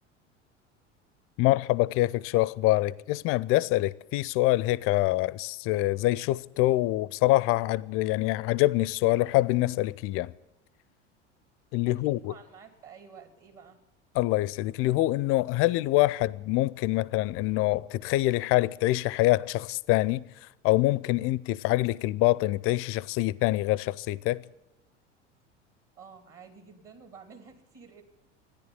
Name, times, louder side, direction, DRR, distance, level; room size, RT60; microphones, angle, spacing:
voice 1, 1.4-10.3 11.7-12.3 14.1-24.4, left 17 dB, 40° left, 0.5 m, -25 dB
voice 2, 11.9-13.8 25.9-28.0, right 6 dB, 40° right, 2.9 m, -50 dB
14.0 x 10.0 x 8.7 m
figure-of-eight pair, 75°, 36 cm